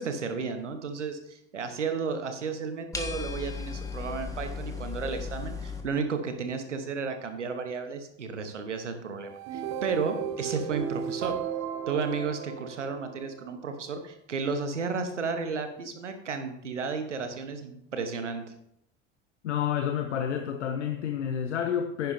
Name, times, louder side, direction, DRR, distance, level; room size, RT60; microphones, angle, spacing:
voice 1, 0.0-11.4 11.9-18.4, right 5 dB, 85° right, 1.2 m, -33 dB
sound 1, 2.9-5.8, left 5 dB, 10° left, 1.6 m, -35 dB
sound 2, 9.2-13.5, right 8 dB, 50° right, 1.0 m, -35 dB
voice 2, 19.4-22.1, left 9 dB, 80° left, 0.8 m, -29 dB
10.5 x 10.5 x 2.7 m
figure-of-eight pair, 70°, 35 cm